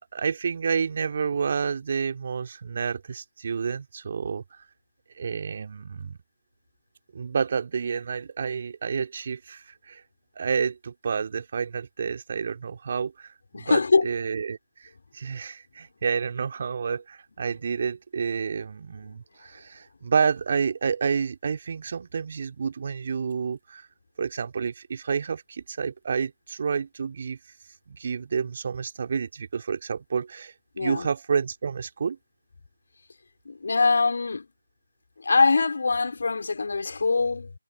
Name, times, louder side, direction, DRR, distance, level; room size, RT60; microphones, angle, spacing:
voice 1, 0.1-4.4 5.2-6.2 7.1-10.0 10.4-23.9 24.2-27.4 27.9-32.2, right 6 dB, 40° right, 2.6 m, -29 dB
voice 2, 13.5-14.1 30.8-31.1 33.4-34.5 35.2-37.5, left 4 dB, 55° left, 4.6 m, -23 dB
figure-of-eight pair, 155°, 0 cm